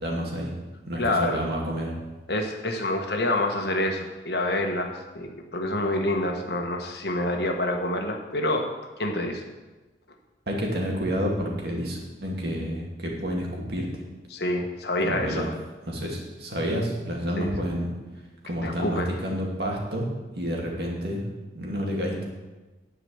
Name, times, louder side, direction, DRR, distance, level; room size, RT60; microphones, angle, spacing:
voice 1, 0.0-0.5 0.9-1.9 10.5-13.9 15.0-15.5 15.9-17.9 18.4-20.1 20.4-21.3 21.5-22.2, equal, 60° right, -1 dB, 2.2 m, -29 dB
voice 2, 1.0-1.4 2.3-8.7 9.0-9.4 14.3-15.5 17.4-17.5 18.6-19.1, left 1 dB, 65° left, 3 dB, 1.3 m, -27 dB
10.0 x 5.0 x 8.0 m, 1.2 s
head